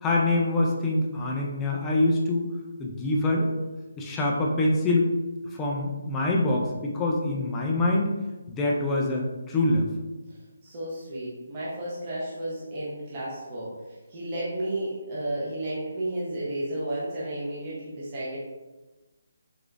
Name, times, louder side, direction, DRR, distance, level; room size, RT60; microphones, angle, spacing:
voice 1, 0.0-2.5 2.8-3.5 4.0-5.1 5.5-8.1 8.5-9.9, left 2 dB, 10° left, -2 dB, 0.4 m, -25 dB
voice 2, 10.6-18.4, right 1 dB, 20° right, -8 dB, 0.8 m, -32 dB
4.9 x 3.7 x 2.5 m, 1.2 s
hypercardioid pair, 180°, 0 cm